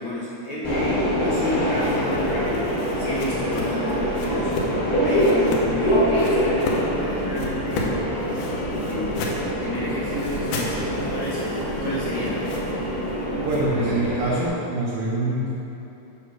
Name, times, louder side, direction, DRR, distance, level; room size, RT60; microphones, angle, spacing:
voice 1, 0.0-4.7 5.0-8.5 8.8-9.3 9.6-12.4, left 1 dB, 70° left, -8 dB, 1.3 m, -31 dB
Subway metro underground, 0.6-14.5, equal, 40° left, 1.4 m, -25 dB
sound 1, 1.7-4.8 5.2-5.7 6.2-6.9 7.3-9.5 10.1-13.7, left 3 dB, 90° left, 2.3 m, -34 dB
voice 2, 13.4-15.5, right 2 dB, 85° right, -4 dB, 1.3 m, -24 dB
9.5 x 3.3 x 6.1 m, 3.0 s
omnidirectional pair, 3.6 m